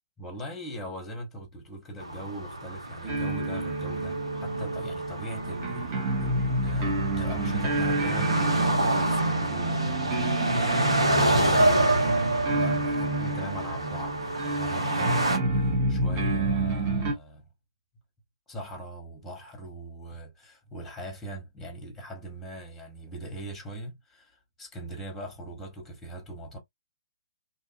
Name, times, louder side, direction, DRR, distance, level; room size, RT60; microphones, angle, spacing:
voice 1, 0.2-10.7 11.0-17.5 18.5-26.6, right 1 dB, 10° left, 1.1 m, -41 dB
sound 1, 2.0-15.4, right 1 dB, 85° right, 1.0 m, -28 dB
sound 2, 3.0-17.1, right 2 dB, 30° right, 0.9 m, -28 dB
2.8 x 2.5 x 2.6 m
figure-of-eight pair, 130°, 3 cm